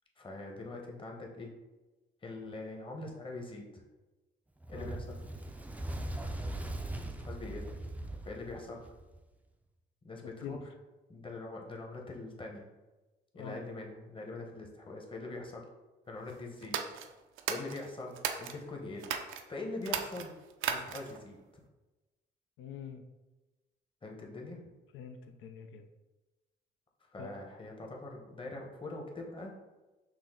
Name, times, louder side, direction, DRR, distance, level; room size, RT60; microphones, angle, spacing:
voice 1, 0.2-1.5 2.2-3.8 4.7-5.2 7.0-7.7 8.2-8.9 10.0-10.6 11.1-12.7 13.3-15.7 16.1-16.8 17.5-19.1 19.5-20.3 20.7-21.6 24.0-24.6 27.1-29.5, left 2 dB, 25° left, 0 dB, 0.9 m, -43 dB
Fire, 4.6-9.2, right 1 dB, 5° right, 0.4 m, -40 dB
voice 2, 10.2-10.6 13.3-13.7 22.6-23.0 24.9-25.9 27.2-27.3, left 7 dB, 80° left, 7 dB, 0.4 m, -45 dB
sound 1, 16.6-18.6 19.0-19.4 19.8-21.2, right 8 dB, 85° right, 0.5 m, -36 dB
6.0 x 2.1 x 3.7 m, 1.1 s
cardioid pair, 90°, 20 cm